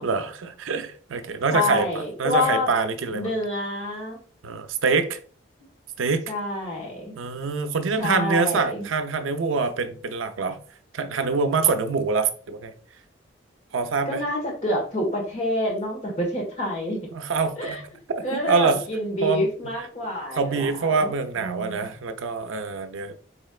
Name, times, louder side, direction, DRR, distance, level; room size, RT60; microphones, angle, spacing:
voice 1, 0.0-3.3 4.4-5.2 6.0-6.2 7.2-10.6 10.9-12.7 13.7-14.2 17.1-17.8 18.3-18.8 19.2-19.5 20.4-23.2, right 4 dB, 85° right, 0.5 m, -25 dB
voice 2, 1.5-2.7 3.1-4.2 6.3-7.1 8.0-8.9 14.1-17.1 17.6-17.8 18.2-21.1 21.4-21.9, left 1 dB, 35° left, 1.4 m, -27 dB
4.3 x 3.2 x 2.3 m
head